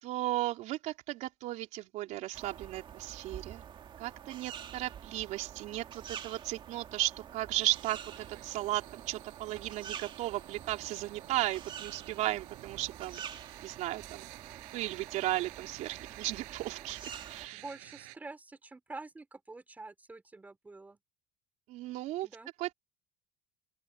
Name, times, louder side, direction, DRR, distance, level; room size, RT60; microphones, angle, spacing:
voice 1, 0.0-3.6 4.0-13.2 13.6-14.3 14.7-17.0 17.3-17.6 21.7-22.3 22.6-22.7, right 16 dB, 60° right, 3.9 m, -35 dB
sound 1, 2.3-17.5, right 9 dB, 35° right, 2.1 m, -47 dB
sound 2, 7.6-18.2, right 35 dB, 80° right, 5.1 m, -52 dB
voice 2, 17.5-21.0 22.2-22.5, right 3 dB, 10° right, 4.5 m, -47 dB
open air
cardioid pair, 140°, 14 cm